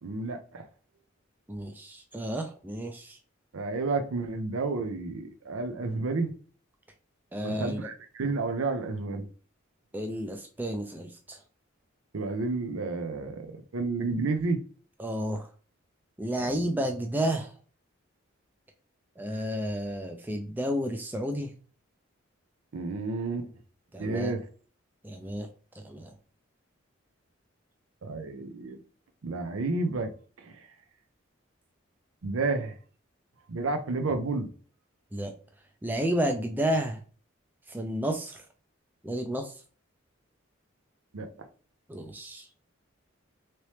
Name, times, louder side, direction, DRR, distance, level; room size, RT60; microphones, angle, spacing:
voice 1, 0.0-0.6 3.5-6.3 7.4-9.3 12.1-14.6 16.4-16.6 22.7-23.5 24.0-24.5 28.0-28.8 29.2-30.1 30.4-30.5 32.2-32.7 33.5-34.5 41.1-41.3, right 3 dB, 80° right, 0.6 m, -31 dB
voice 2, 1.5-3.2 7.3-7.9 9.9-11.4 15.0-15.5 16.2-17.5 19.2-21.5 23.9-24.3 25.0-25.5 25.9-26.1 35.1-35.3 35.8-37.0 37.7-38.4 39.0-39.5 41.9-42.4, equal, 10° right, 0.3 m, -31 dB
2.9 x 2.9 x 3.2 m
head